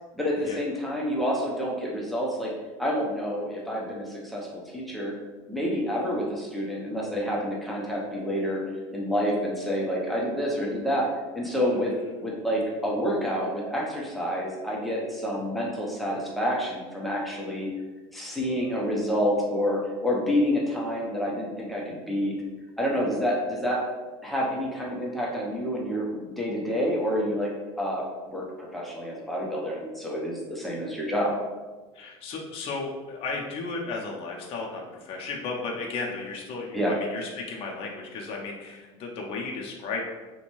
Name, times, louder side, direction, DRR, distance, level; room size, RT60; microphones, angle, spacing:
voice 1, 0.1-2.5 2.8-5.1 5.5-8.6 8.9-11.1 11.3-11.9 12.2-17.7 18.1-22.4 22.8-23.8 24.2-27.5 27.8-28.0 28.3-31.3 36.7-36.9, equal, ahead, -4 dB, 0.6 m, -28 dB
voice 2, 31.9-40.0, left 3 dB, 45° left, -1 dB, 0.5 m, -34 dB
2.5 x 2.2 x 3.0 m, 1.3 s
supercardioid pair, 115°, 14 cm